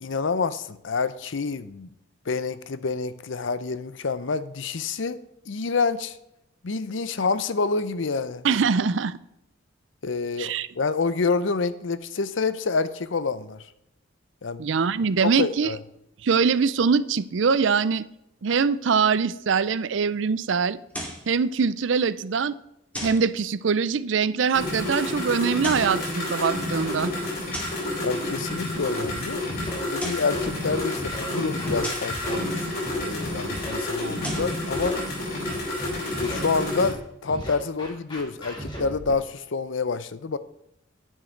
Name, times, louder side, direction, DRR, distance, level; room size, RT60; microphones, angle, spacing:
voice 1, 0.0-1.9 2.3-5.2 5.5-6.2 6.6-8.4 10.0-13.6 14.4-14.7 15.3-15.8 28.0-29.4 29.8-32.7 33.0-35.0 36.2-40.4, left 4 dB, 70° left, 14 dB, 0.6 m, -28 dB
voice 2, 8.4-9.2 10.4-10.7 14.6-15.7 16.2-18.0 18.4-20.8 21.3-22.5 23.0-27.1, right 5 dB, 65° right, 16 dB, 0.5 m, -23 dB
sound 1, 20.9-21.3 22.9-23.3 25.5-26.0 27.5-27.9 29.8-30.4 31.8-32.2 34.0-34.6, equal, 5° left, 2.3 m, -35 dB
sound 2, 24.5-36.9, left 1 dB, 50° left, 4.2 m, -30 dB
Scratching (performance technique), 29.0-29.1 29.5-29.8 30.3-31.3 31.6-31.8 32.1-32.4 32.8-33.8 34.2-34.4 34.7-35.0 35.5-36.4 36.8-37.0 37.3-39.1, equal, 25° left, 2.6 m, -36 dB
10.0 x 6.4 x 4.5 m, 0.83 s
head